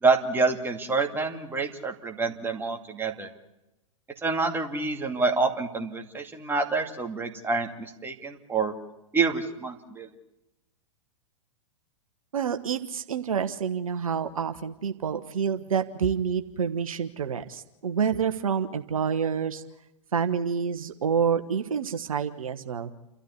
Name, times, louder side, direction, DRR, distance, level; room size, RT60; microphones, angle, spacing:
voice 1, 0.0-3.3 4.2-8.7 9.1-10.1, right 4 dB, 10° right, 4 dB, 2.4 m, -27 dB
voice 2, 12.3-19.6 20.1-22.9, right 7 dB, 75° right, 8 dB, 1.3 m, -28 dB
29.0 x 13.0 x 9.7 m, 0.93 s
figure-of-eight pair, 105°, 18 cm